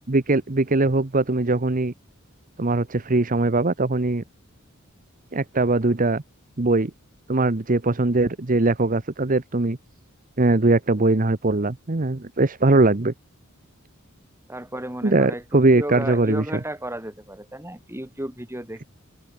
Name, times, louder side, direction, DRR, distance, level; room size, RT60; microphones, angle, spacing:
voice 1, 0.1-1.9 2.6-4.2 5.3-6.2 6.6-6.9 7.3-9.8 10.4-13.1 15.0-16.4, right 2 dB, 40° right, 1.0 m, -21 dB
voice 2, 14.5-18.9, right 1 dB, 10° right, 6.5 m, -33 dB
open air
head